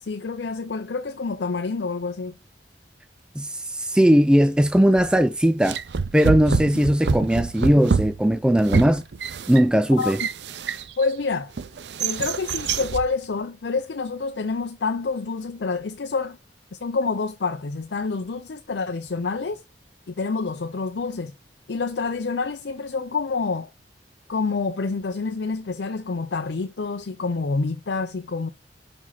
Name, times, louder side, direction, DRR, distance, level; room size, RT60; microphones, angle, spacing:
voice 1, 0.0-2.3 10.0-10.1 11.0-11.5 12.0-16.4 16.8-19.6 20.1-21.3 21.7-23.7 24.3-28.5, left 4 dB, 70° left, 0.5 m, -27 dB
voice 2, 3.4-5.8 6.1-9.0 9.5-10.2, equal, 5° right, 0.3 m, -19 dB
sound 1, 5.0-5.2 5.6-11.1 11.6-13.1, right 5 dB, 70° right, 0.5 m, -26 dB
5.4 x 4.9 x 5.8 m
head